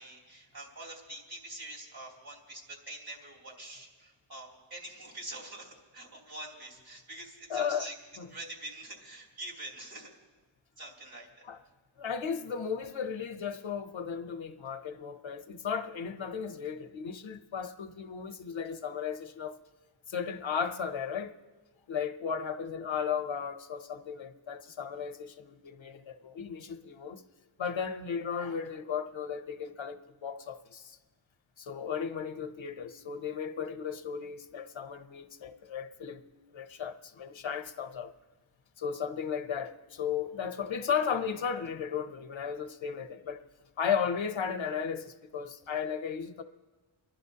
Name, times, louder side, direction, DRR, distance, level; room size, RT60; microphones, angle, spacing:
voice 1, 0.0-7.9 8.3-10.1 10.8-11.3, right 1 dB, 50° right, 3.0 m, -45 dB
voice 2, 7.5-7.9 8.2-8.3 11.4-11.6 12.0-19.6 20.1-21.3 21.9-27.2 27.6-31.0 31.6-36.2 36.5-38.1 38.8-43.4 43.8-46.4, left 7 dB, 75° left, 0.8 m, -35 dB
29.5 x 11.5 x 2.8 m
wide cardioid pair, 75°, 47 cm